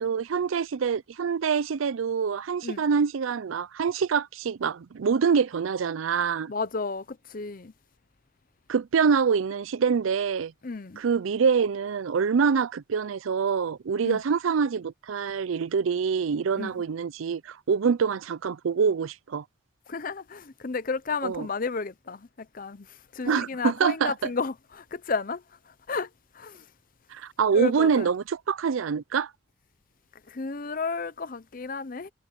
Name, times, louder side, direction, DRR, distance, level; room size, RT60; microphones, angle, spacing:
voice 1, 0.0-6.5 8.7-10.5 11.0-19.4 21.2-21.5 23.3-24.1 27.1-29.3, right 6 dB, 85° right, 0.4 m, -25 dB
voice 2, 6.5-7.7 10.6-11.0 14.0-14.2 16.6-16.7 19.9-26.1 26.3-26.7 27.5-28.1 30.3-32.1, left 4 dB, 45° left, 0.7 m, -32 dB
head